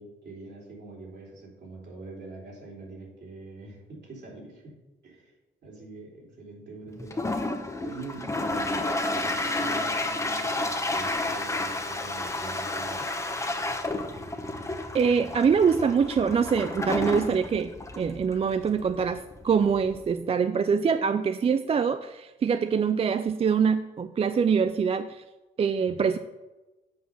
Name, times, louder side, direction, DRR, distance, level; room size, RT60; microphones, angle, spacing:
voice 1, 0.0-4.8 5.0-5.3 5.6-7.3 7.8-8.9 9.1-13.1 25.8-26.0, right 3 dB, 60° right, -3 dB, 3.4 m, -44 dB
Toilet flush, 7.0-20.1, left 2 dB, 15° left, 0.9 m, -31 dB
voice 2, 14.9-17.7 18.0-25.2 25.6-26.2, right 6 dB, 30° right, 11 dB, 0.4 m, -24 dB
7.8 x 5.0 x 6.3 m, 1.1 s
cardioid pair, 90°, 20 cm